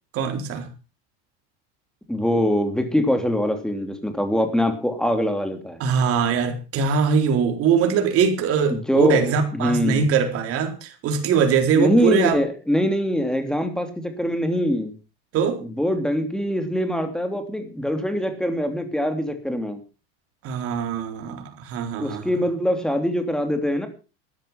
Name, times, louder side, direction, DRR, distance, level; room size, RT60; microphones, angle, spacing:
voice 1, 0.1-0.7 5.8-12.4 15.3-15.6 20.4-22.3, right 6 dB, 50° right, 5 dB, 3.9 m, -22 dB
voice 2, 2.1-5.8 8.7-10.0 11.7-14.9 15.7-19.8 22.0-23.9, equal, ahead, 7 dB, 3.0 m, -23 dB
13.5 x 10.5 x 5.9 m, 0.34 s
supercardioid pair, 120°, 29 cm